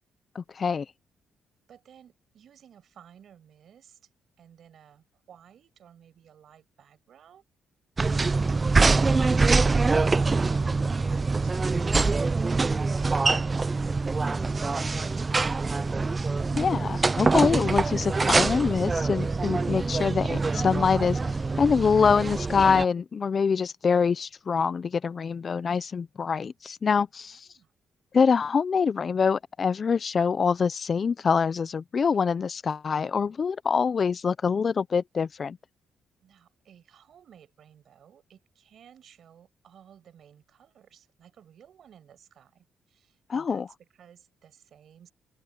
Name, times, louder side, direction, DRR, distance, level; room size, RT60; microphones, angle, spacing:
voice 1, 0.3-0.9 16.5-27.5 28.1-35.6 43.3-43.7, left 6 dB, 40° left, 0.6 m, -25 dB
voice 2, 1.7-4.0 4.4-7.4 27.3-27.7 36.2-45.1, right 9 dB, 65° right, 6.8 m, -55 dB
sound 1, 8.0-22.8, right 3 dB, 25° right, 0.6 m, -24 dB
cardioid pair, 90°, 0 cm